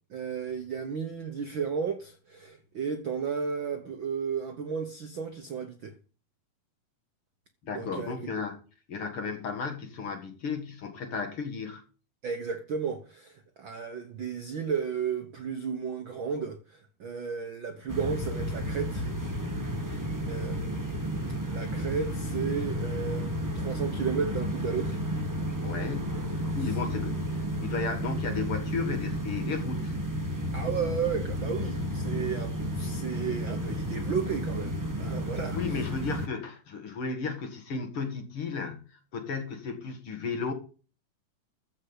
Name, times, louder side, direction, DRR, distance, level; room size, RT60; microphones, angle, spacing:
voice 1, 0.1-5.9 7.7-8.2 12.2-19.1 19.8-25.0 26.5-26.8 30.5-35.9, right 6 dB, 60° right, 1.3 m, -34 dB
voice 2, 7.6-8.6 8.9-11.8 25.6-30.0 35.5-40.5, left 5 dB, 50° left, 2.4 m, -34 dB
sound 1, 17.9-36.3, equal, 20° right, 0.4 m, -32 dB
14.5 x 5.4 x 8.1 m
omnidirectional pair, 3.7 m